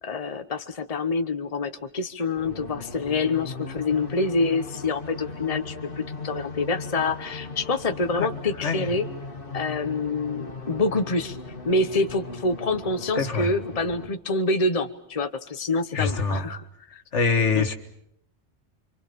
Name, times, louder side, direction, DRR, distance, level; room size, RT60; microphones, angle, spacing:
voice 1, 0.0-9.0 9.5-11.4 11.6-16.6 16.9-17.0 17.5-17.6, left 3 dB, 35° left, 8 dB, 1.2 m, -26 dB
sound 1, 2.4-14.1, left 3 dB, 50° left, 2.5 m, -38 dB
voice 2, 8.6-8.9 13.1-13.5 15.9-16.5 17.1-17.7, left 4 dB, 85° left, 6 dB, 2.1 m, -24 dB
29.5 x 24.5 x 6.9 m, 0.73 s
omnidirectional pair, 1.2 m